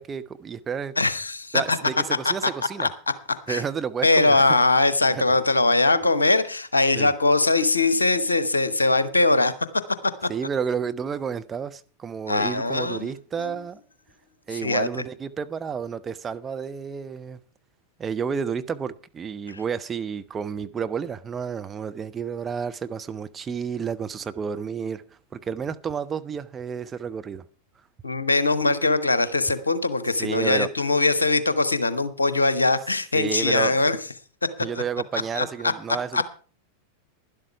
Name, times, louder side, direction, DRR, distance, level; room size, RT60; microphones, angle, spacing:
voice 1, 0.0-0.9 1.5-2.9 3.5-4.6 5.1-5.2 7.0-7.1 10.3-13.8 14.5-17.4 18.0-25.0 25.3-27.4 30.2-30.7 33.1-33.8 34.6-36.2, right 6 dB, 20° right, 0.7 m, -31 dB
voice 2, 1.0-1.8 2.2-2.5 2.8-2.9 3.5-3.6 4.0-9.5 10.2-10.3 12.3-13.1 13.4-13.5 14.6-14.9 28.0-34.0 35.4-35.5 36.1-36.2, left 2 dB, 80° left, 1.0 m, -21 dB
11.5 x 11.5 x 4.7 m
figure-of-eight pair, 90°, 0 cm